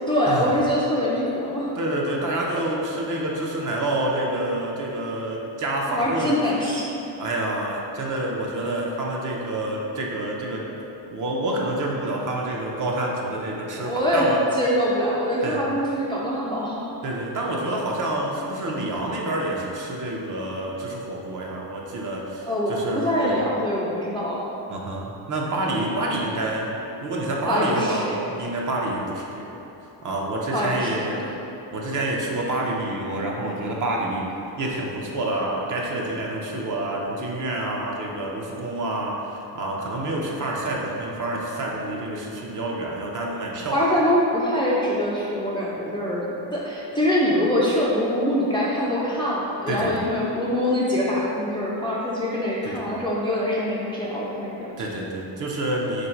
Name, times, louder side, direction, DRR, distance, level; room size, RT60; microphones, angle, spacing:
voice 1, 0.1-1.7 5.9-7.0 13.8-14.3 14.5-16.9 22.4-24.4 27.5-28.2 30.5-31.0 43.7-54.7, equal, 15° left, -7 dB, 0.3 m, -24 dB
voice 2, 1.8-6.5 7.2-10.7 11.1-14.5 15.4-15.6 17.0-23.4 24.7-29.5 30.0-31.3 31.7-43.9 49.7-50.0 52.6-52.9 54.8-56.1, right 1 dB, 45° right, -2 dB, 0.6 m, -28 dB
3.9 x 2.6 x 4.4 m, 2.9 s
cardioid pair, 135°, 44 cm